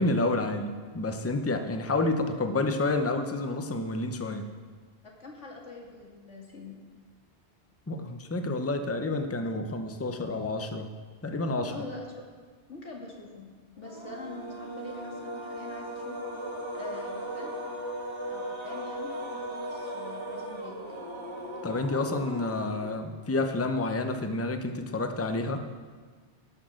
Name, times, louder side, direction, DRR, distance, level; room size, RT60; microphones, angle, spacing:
voice 1, 0.0-4.4 7.9-10.9 11.2-11.7 21.6-25.6, left 2 dB, 15° left, 7 dB, 0.6 m, -29 dB
voice 2, 5.0-6.8 11.7-12.1 12.7-13.5 13.8-17.6 18.3-20.8, left 3 dB, 80° left, -1 dB, 2.5 m, -44 dB
sound 1, 13.8-23.2, right 1 dB, 25° right, 1.6 m, -37 dB
17.5 x 6.4 x 6.3 m, 1.5 s
omnidirectional pair, 1.2 m